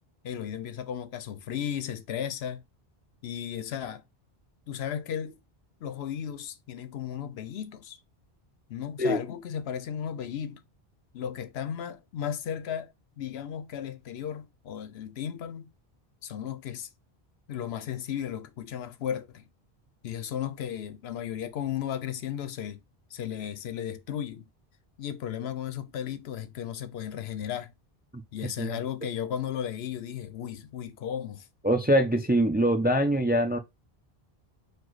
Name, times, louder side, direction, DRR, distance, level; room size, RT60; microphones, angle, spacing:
voice 1, 0.2-2.6 3.2-4.0 4.7-5.4 5.8-8.0 8.7-10.6 11.1-15.7 16.2-16.9 17.5-19.5 20.0-22.8 23.1-24.4 25.0-27.7 28.3-31.5, left 9 dB, 85° left, 0.9 m, -35 dB
voice 2, 31.6-33.6, right 1 dB, 15° right, 0.3 m, -23 dB
4.8 x 2.3 x 3.9 m
omnidirectional pair, 1.0 m